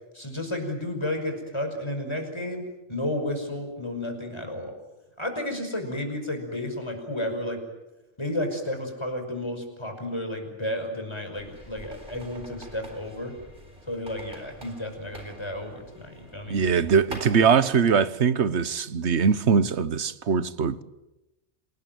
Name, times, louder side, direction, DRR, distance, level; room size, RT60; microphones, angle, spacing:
voice 1, 0.1-4.7 5.2-7.6 8.2-13.4 13.9-16.6, left 1 dB, 25° left, 5.8 m, -32 dB
sound 1, 11.4-17.5, right 1 dB, 45° right, 4.5 m, -45 dB
voice 2, 16.5-20.8, right 6 dB, 70° right, 1.4 m, -22 dB
28.0 x 19.5 x 9.2 m
omnidirectional pair, 1.2 m